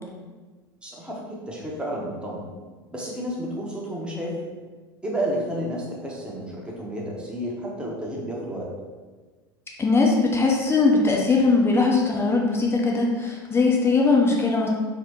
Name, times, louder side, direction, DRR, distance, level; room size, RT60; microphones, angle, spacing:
voice 1, 0.8-2.4 2.9-4.3 5.0-8.7, right 1 dB, 10° right, -3 dB, 0.8 m, -31 dB
voice 2, 9.8-14.7, left 3 dB, 20° left, -1 dB, 0.5 m, -20 dB
2.9 x 2.1 x 3.5 m, 1.4 s
hypercardioid pair, 80°, 12 cm